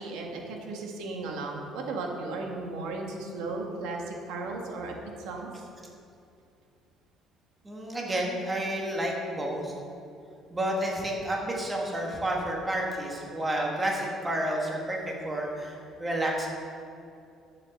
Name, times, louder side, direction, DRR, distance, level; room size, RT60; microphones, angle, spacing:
voice 1, 0.0-5.5, right 3 dB, 90° right, 1 dB, 1.9 m, -35 dB
voice 2, 7.6-9.7 10.5-16.5, right 1 dB, 15° right, -2 dB, 1.8 m, -30 dB
11.0 x 7.4 x 6.6 m, 2.6 s
cardioid pair, 150°, 0 cm